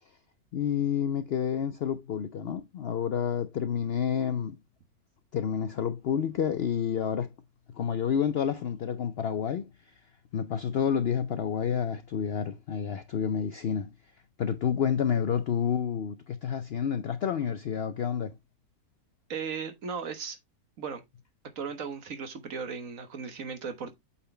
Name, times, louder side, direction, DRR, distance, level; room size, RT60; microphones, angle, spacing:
voice 1, 0.5-4.6 5.3-7.3 7.7-9.7 10.3-13.9 14.4-18.4, left 8 dB, 65° left, 0.6 m, -29 dB
voice 2, 19.3-20.4 20.8-21.0 21.5-23.9, right 6 dB, 60° right, 1.5 m, -36 dB
8.4 x 4.1 x 3.2 m
omnidirectional pair, 1.6 m